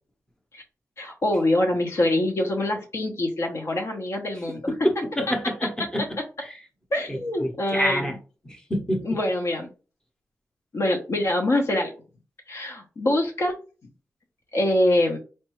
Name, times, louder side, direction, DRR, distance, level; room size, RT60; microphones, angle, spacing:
voice 1, 1.0-4.6 6.9-8.0 9.1-9.7 10.7-11.9 12.5-13.5 14.5-15.2, left 1 dB, 50° left, 0.9 m, -24 dB
voice 2, 4.5-6.0 6.4-6.6 7.1-8.2 8.4-9.2, equal, 10° left, 0.9 m, -27 dB
4.4 x 2.6 x 3.1 m
wide cardioid pair, 130°, 6 cm